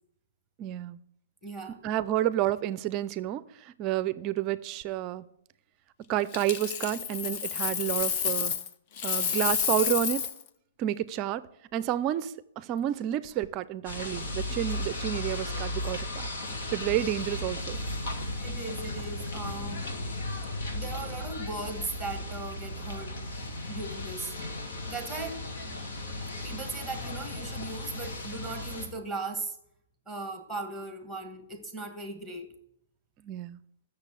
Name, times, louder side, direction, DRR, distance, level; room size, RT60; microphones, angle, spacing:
voice 1, 0.6-1.0 1.8-3.4 3.8-5.2 6.1-8.5 9.0-10.3 10.8-11.5 11.7-16.3 16.7-17.8 33.2-33.6, right 12 dB, 25° right, 0.5 m, -30 dB
voice 2, 1.4-1.8 18.4-19.9 20.7-23.2 23.7-24.3 24.9-25.4 26.0-29.6 30.1-32.5, right 3 dB, ahead, 1.6 m, -38 dB
Coin (dropping), 6.3-8.7 9.0-10.4 13.2-13.5, left 8 dB, 35° left, 0.7 m, -30 dB
sound 1, 13.8-28.9, left 1 dB, 80° left, 3.0 m, -35 dB
13.5 x 6.8 x 8.2 m
hypercardioid pair, 165°, 0 cm